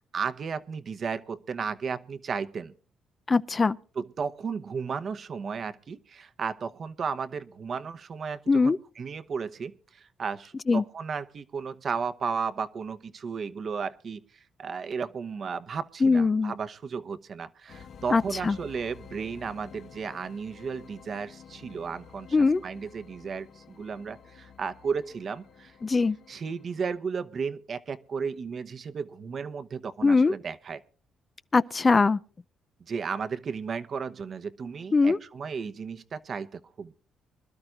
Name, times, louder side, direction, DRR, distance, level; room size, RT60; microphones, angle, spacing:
voice 1, 0.1-2.7 4.0-25.7 26.3-30.8 32.8-36.9, right 5 dB, 50° right, 1.0 m, -34 dB
voice 2, 3.3-3.8 8.5-8.8 10.7-10.8 16.0-16.5 18.1-18.6 22.3-22.6 25.8-26.2 30.0-30.3 31.5-32.2 34.9-35.2, left 4 dB, 30° left, 0.5 m, -21 dB
sound 1, 17.7-27.0, left 7 dB, 60° left, 1.3 m, -51 dB
25.0 x 12.5 x 2.5 m
cardioid pair, 90°, 0 cm